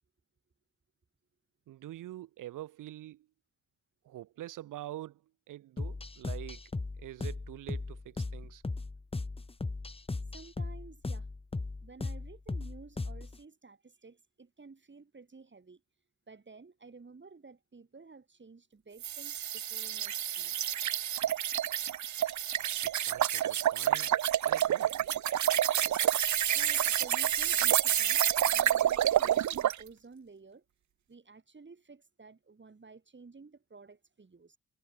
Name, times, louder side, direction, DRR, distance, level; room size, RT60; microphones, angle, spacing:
voice 1, 1.7-3.3 4.0-5.2 5.5-6.6 7.0-8.6 23.1-25.1, right 14 dB, 90° right, 1.6 m, -45 dB
sound 1, 5.8-13.4, left 3 dB, 20° left, 1.1 m, -37 dB
voice 2, 10.3-11.3 11.8-15.8 16.3-20.5 22.8-22.9 26.5-28.2 28.5-30.6 31.1-34.6, right 4 dB, 35° right, 7.5 m, -53 dB
sound 2, 19.0-29.8, right 11 dB, 65° right, 1.0 m, -28 dB
cardioid pair, 65°, 31 cm